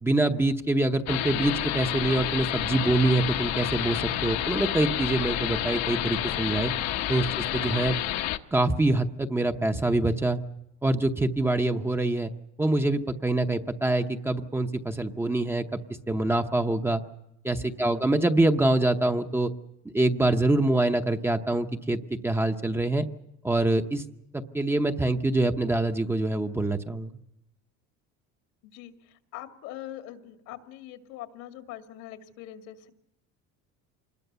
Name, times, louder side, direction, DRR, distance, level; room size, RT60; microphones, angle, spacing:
voice 1, 0.0-6.7 7.1-7.3 7.5-7.9 8.5-10.4 10.8-12.3 12.6-15.6 16.1-17.0 17.4-19.5 19.9-23.1 23.4-24.0 24.5-27.1, right 2 dB, 10° right, 6 dB, 0.8 m, -25 dB
sound 1, 1.1-8.4, left 13 dB, 60° left, 1.1 m, -29 dB
voice 2, 17.8-18.1 28.6-32.9, left 12 dB, 75° left, 6 dB, 2.3 m, -43 dB
26.0 x 20.5 x 6.8 m, 0.86 s
cardioid pair, 150°, 30 cm